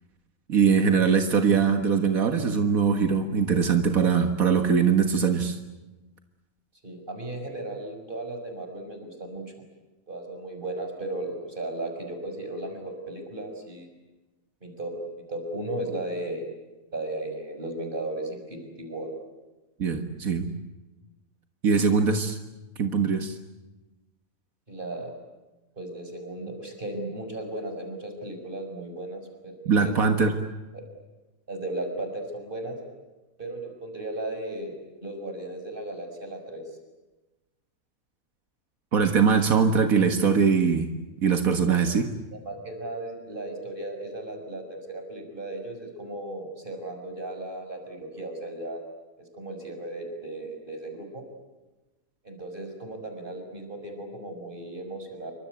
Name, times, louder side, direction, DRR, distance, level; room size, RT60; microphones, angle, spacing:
voice 1, 0.5-5.6 19.8-20.5 21.6-22.4 22.8-23.4 29.7-30.3 38.9-40.9 41.2-42.1, right 6 dB, 85° right, 5 dB, 2.0 m, -22 dB
voice 2, 6.8-9.4 10.1-13.9 14.6-15.0 15.3-16.4 16.9-19.1 24.7-25.1 25.8-30.0 30.7-30.8 31.5-32.8 33.4-34.7 35.0-36.6 41.7-41.8 42.3-48.8 49.2-51.2 52.2-55.3, right 1 dB, 35° right, 5 dB, 6.2 m, -35 dB
27.5 x 25.0 x 8.2 m, 1.1 s
omnidirectional pair, 1.4 m